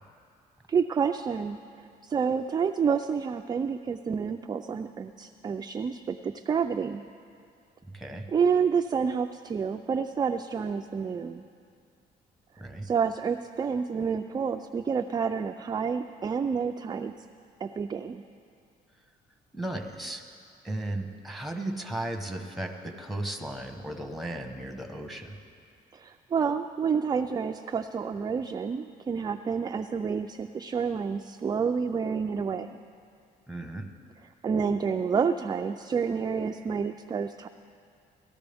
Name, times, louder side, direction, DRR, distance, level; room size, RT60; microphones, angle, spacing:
voice 1, 0.7-1.6 2.0-7.0 8.3-11.4 12.8-17.1 17.6-18.2 25.9-32.8 34.4-37.5, right 6 dB, 25° right, 6 dB, 0.3 m, -29 dB
voice 2, 7.9-8.3 12.6-12.9 19.5-20.2 20.6-25.4 33.5-33.9, right 1 dB, ahead, 4 dB, 1.1 m, -35 dB
18.5 x 13.5 x 3.5 m, 2.4 s
cardioid pair, 110°, 17 cm